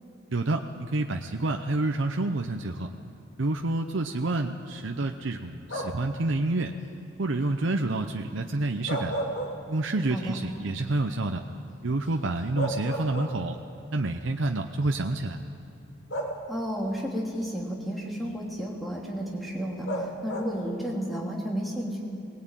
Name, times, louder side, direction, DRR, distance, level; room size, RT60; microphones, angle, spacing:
voice 1, 0.3-2.9 3.4-6.7 7.2-9.1 9.7-11.4 11.8-13.6 13.9-15.4, right 2 dB, 75° right, 4 dB, 0.8 m, -28 dB
sound 1, 5.7-6.2 8.7-10.1 10.5-10.6 12.1-12.2 12.6-13.7 14.7-14.8 16.1-16.8 19.9-20.7, right 1 dB, 75° left, 2.4 m, -33 dB
voice 2, 16.5-22.0, equal, ahead, -3 dB, 3.0 m, -32 dB
20.5 x 18.5 x 9.1 m, 2.6 s
head